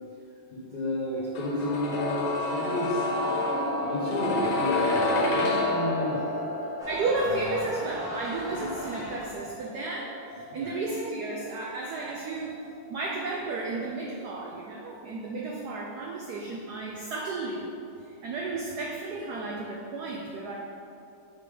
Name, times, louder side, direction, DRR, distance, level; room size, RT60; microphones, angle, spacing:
voice 1, 0.5-3.1 3.8-6.2 8.5-8.7 10.5-10.7, left 1 dB, 90° left, -8 dB, 0.4 m, -31 dB
sound 1, 1.3-13.2 13.5-13.6, left 2 dB, 70° left, 1.6 m, -30 dB
sound 2, 6.8-9.6, equal, 5° right, 0.7 m, -39 dB
voice 2, 6.9-12.6 12.9-17.7 18.2-20.5, right 3 dB, 85° right, -2 dB, 0.8 m, -33 dB
6.0 x 3.9 x 4.9 m, 2.6 s
omnidirectional pair, 2.4 m